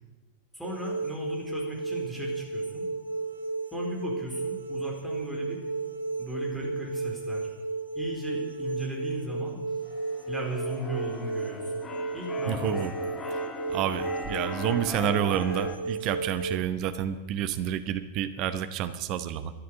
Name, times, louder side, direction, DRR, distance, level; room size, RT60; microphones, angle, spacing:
voice 1, 0.5-2.9 3.7-5.6 6.2-7.5 7.9-9.6 10.3-11.8 12.1-12.8, equal, ahead, -2 dB, 4.3 m, -36 dB
sound 1, 0.6-16.6, right 3 dB, 75° right, 1.1 m, -34 dB
Keyboard (musical), 9.9-15.7, left 4 dB, 20° left, 1.6 m, -39 dB
voice 2, 12.5-12.9 13.3-13.4 13.7-19.5, right 10 dB, 40° right, 12 dB, 1.0 m, -29 dB
13.5 x 11.0 x 8.3 m, 1.2 s
figure-of-eight pair, 90°, 0 cm